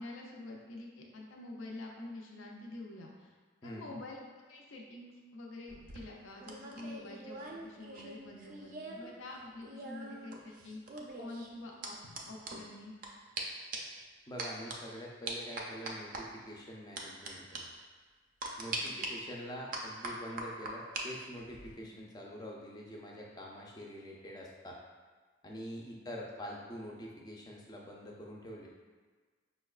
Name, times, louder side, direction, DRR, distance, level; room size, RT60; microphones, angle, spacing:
voice 1, 0.0-3.4 3.6-4.2 4.5-12.0 12.3-12.9 18.7-19.1, left 2 dB, 80° left, -1 dB, 0.5 m, -47 dB
voice 2, 3.6-4.0 14.3-17.7 18.6-24.8 25.4-28.7, equal, 20° left, -2 dB, 0.4 m, -45 dB
sound 1, 5.7-9.1 9.4-13.1 13.4-13.5 13.7-14.0 14.4-14.8 15.3-16.2 17.0-17.3 17.5-17.6 18.4-19.1 19.7-21.0 21.4-21.7, right 2 dB, 45° right, 0.4 m, -42 dB
5.2 x 2.1 x 2.3 m, 1.4 s
head